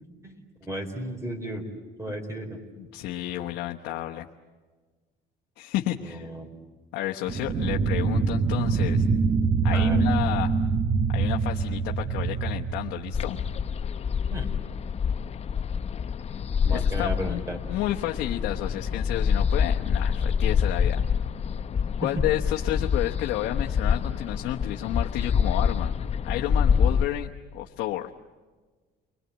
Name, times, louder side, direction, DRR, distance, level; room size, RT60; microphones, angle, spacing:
voice 1, 0.2-1.6 2.0-2.6 6.0-6.5 9.7-10.0 14.3-14.5 16.6-17.6 22.0-22.3, right 1 dB, 15° right, 4 dB, 4.4 m, -34 dB
voice 2, 2.8-4.3 5.6-6.3 6.9-9.1 9.6-10.5 11.1-13.4 16.7-17.4 17.7-21.0 22.0-25.9 26.2-28.1, left 14 dB, 90° left, 2 dB, 1.2 m, -31 dB
sound 1, 7.3-13.7, right 4 dB, 45° right, 1.2 m, -25 dB
sound 2, 13.1-27.0, left 7 dB, 40° left, 0.8 m, -26 dB
30.0 x 22.0 x 8.0 m, 1.4 s
cardioid pair, 110°, 17 cm